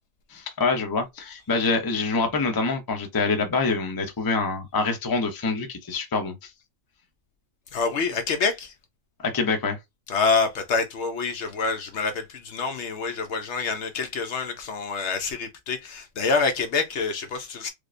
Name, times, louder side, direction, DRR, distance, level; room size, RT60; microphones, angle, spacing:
voice 1, 0.3-6.5 9.2-9.8, left 4 dB, 25° left, 0.5 m, -25 dB
voice 2, 7.7-8.7 10.1-17.7, left 4 dB, 65° left, 0.9 m, -26 dB
4.8 x 2.1 x 2.5 m
omnidirectional pair, 1.4 m